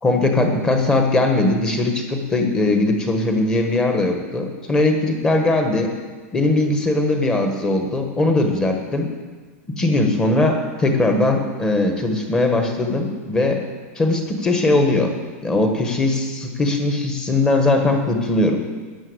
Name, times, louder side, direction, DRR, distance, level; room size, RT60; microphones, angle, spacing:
voice 1, 0.0-5.9 6.3-9.1 9.8-13.6 13.9-15.1 15.4-18.6, left 2 dB, 10° left, 4 dB, 1.4 m, -20 dB
13.0 x 10.5 x 8.0 m, 1.4 s
supercardioid pair, 175°, 8 cm